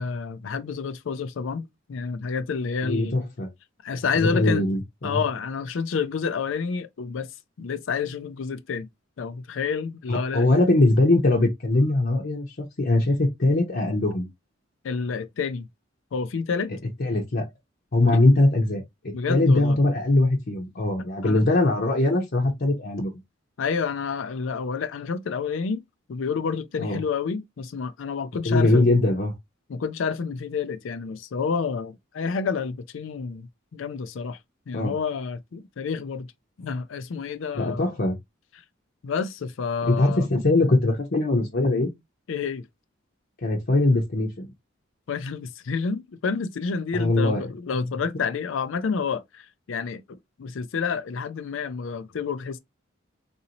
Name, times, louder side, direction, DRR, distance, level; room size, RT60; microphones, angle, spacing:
voice 1, 0.0-3.2 3.8-4.6 5.0-7.3 7.6-8.9 9.2-10.5 14.8-15.7 16.1-16.7 18.1-18.2 19.1-19.8 21.2-21.4 23.6-25.8 26.1-28.9 29.7-34.4 34.7-36.3 36.6-37.9 39.0-40.3 42.3-42.7 45.1-52.6, left 5 dB, 70° left, 0.4 m, -29 dB
voice 2, 2.8-3.5 4.1-5.2 10.1-14.3 17.0-17.5 17.9-23.1 26.8-27.0 28.4-29.3 34.7-35.0 37.5-38.2 39.9-41.9 43.4-44.5 46.9-47.5, left 2 dB, 55° left, 0.8 m, -21 dB
4.0 x 2.7 x 2.8 m
head